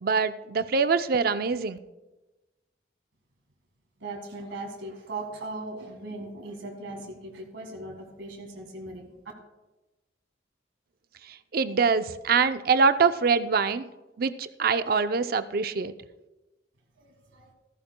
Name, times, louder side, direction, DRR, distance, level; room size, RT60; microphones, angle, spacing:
voice 1, 0.0-1.8 11.5-13.9 14.2-15.9, right 5 dB, 55° right, 11 dB, 0.5 m, -24 dB
voice 2, 4.0-9.1 17.0-17.5, right 2 dB, 85° right, 1 dB, 1.8 m, -39 dB
14.5 x 14.0 x 2.2 m, 1.1 s
head